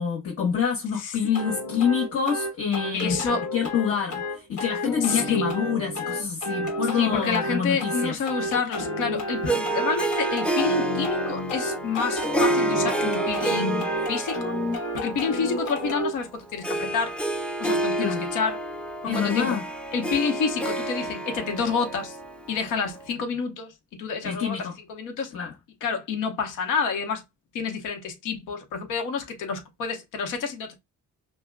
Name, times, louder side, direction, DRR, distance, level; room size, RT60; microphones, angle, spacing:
voice 1, 0.0-8.1 18.0-18.3 19.0-19.6 24.2-24.7 25.3-25.5, left 7 dB, 50° left, 1.0 m, -27 dB
sound 1, 1.3-16.1, equal, 70° left, 1.2 m, -31 dB
voice 2, 2.9-3.4 5.0-5.5 6.9-14.5 14.9-17.1 17.6-18.6 19.0-19.6 19.9-22.2 22.5-25.3 25.8-27.2 27.5-30.8, left 5 dB, 90° left, 0.9 m, -29 dB
Harp, 9.5-23.1, right 2 dB, 5° left, 0.5 m, -29 dB
5.6 x 2.2 x 2.2 m
cardioid pair, 90°, 30 cm